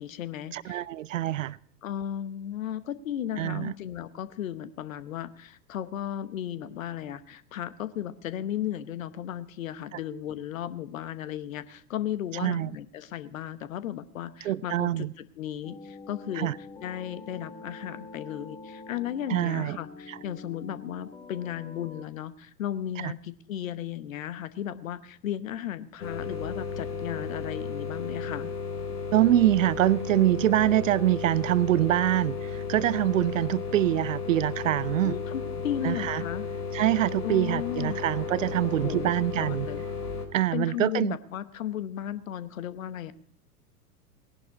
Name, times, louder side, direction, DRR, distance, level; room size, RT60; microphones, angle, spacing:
voice 1, 0.0-0.8 1.8-16.5 16.8-28.5 35.0-36.5 37.2-38.0 38.8-39.1 39.4-39.8 40.5-43.1, left 10 dB, 60° left, 0.9 m, -35 dB
voice 2, 0.5-1.6 3.4-3.7 12.4-12.7 14.4-15.1 16.4-16.5 19.3-19.8 20.1-20.2 23.0-23.1 29.1-35.2 35.8-36.2 36.7-39.7 40.3-41.2, right 13 dB, 60° right, 0.5 m, -25 dB
sound 1, 15.6-22.1, left 3 dB, 15° left, 1.1 m, -46 dB
sound 2, 26.0-40.3, left 5 dB, 75° left, 1.7 m, -34 dB
18.5 x 11.0 x 3.9 m
figure-of-eight pair, 95°, 47 cm